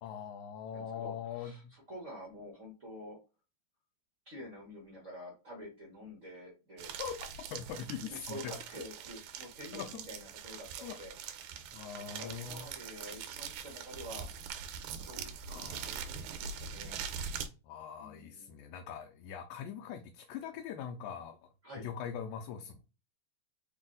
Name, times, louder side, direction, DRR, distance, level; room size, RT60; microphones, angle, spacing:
voice 1, 0.0-1.7 7.0-7.2 7.5-8.5 9.7-9.9 10.8-11.0 11.7-12.7 15.5-16.1 17.6-21.5 21.8-22.8, left 8 dB, 90° left, 2.0 m, -42 dB
voice 2, 0.7-3.2 4.2-6.9 7.9-11.1 11.4-14.3 15.0-17.0 18.0-18.5 21.6-21.9, equal, 70° right, 0.7 m, -48 dB
sound 1, 6.8-17.5, right 7 dB, 85° right, 2.0 m, -43 dB
4.7 x 2.3 x 3.8 m
omnidirectional pair, 3.3 m